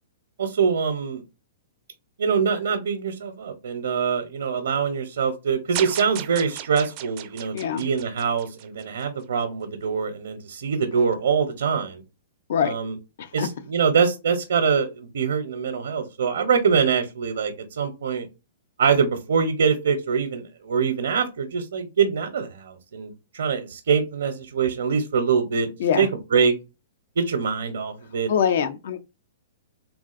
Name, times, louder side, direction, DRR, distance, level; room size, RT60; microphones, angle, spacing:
voice 1, 0.4-1.2 2.2-12.0 12.6-12.9 13.3-18.3 18.8-25.7 26.0-26.5 27.2-28.3, right 6 dB, 80° right, 0.6 m, -24 dB
sound 1, 5.7-9.0, right 12 dB, 35° right, 0.4 m, -35 dB
voice 2, 7.5-7.8 12.5-12.8 13.2-13.5 25.8-26.1 28.3-29.0, left 8 dB, 60° left, 0.4 m, -23 dB
3.6 x 2.4 x 2.4 m
hypercardioid pair, 150°, 0 cm